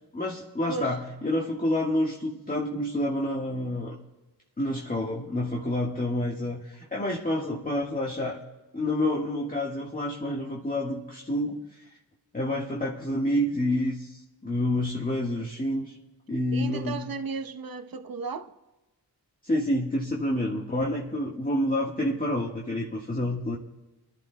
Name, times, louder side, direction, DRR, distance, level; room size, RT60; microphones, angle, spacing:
voice 1, 0.1-4.0 4.6-8.4 8.7-11.9 12.3-16.0 16.3-17.0 19.4-23.6, left 1 dB, 20° left, 1.5 m, -28 dB
voice 2, 16.5-18.5, right 5 dB, 55° right, 1.0 m, -34 dB
27.5 x 11.5 x 2.3 m
cardioid pair, 55°, 41 cm